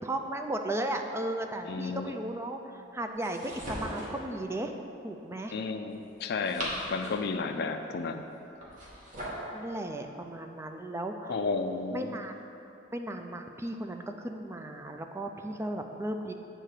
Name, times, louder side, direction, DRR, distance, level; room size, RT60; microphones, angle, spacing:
voice 1, 0.0-4.7 5.0-5.6 7.0-7.1 7.5-7.7 9.5-11.4 11.9-12.3 12.6-16.3, right 1 dB, 15° right, 5 dB, 0.4 m, -35 dB
voice 2, 1.7-2.1 5.5-8.2 11.3-12.1, left 4 dB, 60° left, 6 dB, 0.4 m, -32 dB
sound 1, 3.2-4.2 6.2-7.3 8.6-9.5, equal, 40° right, 1.6 m, -38 dB
8.1 x 3.8 x 6.4 m, 2.8 s
head